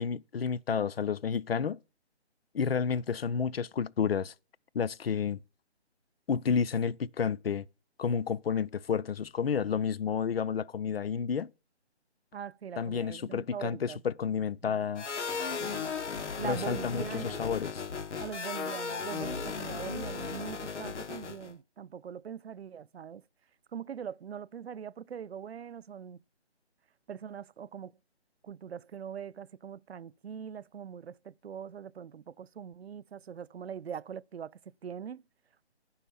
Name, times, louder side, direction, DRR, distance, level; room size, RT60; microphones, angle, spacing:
voice 1, 0.0-1.8 2.5-4.3 4.7-5.4 6.3-7.7 8.0-11.5 12.8-15.0 16.4-17.8, left 6 dB, 60° left, 0.5 m, -30 dB
voice 2, 12.3-14.0 14.6-14.8 15.6-15.9 16.2-17.5 18.2-23.2 23.7-26.2 27.1-27.9 28.4-35.2, right 8 dB, 65° right, 0.5 m, -42 dB
sound 1, 15.0-21.5, left 5 dB, 85° left, 0.9 m, -36 dB
10.0 x 5.6 x 6.9 m
figure-of-eight pair, 165°, 34 cm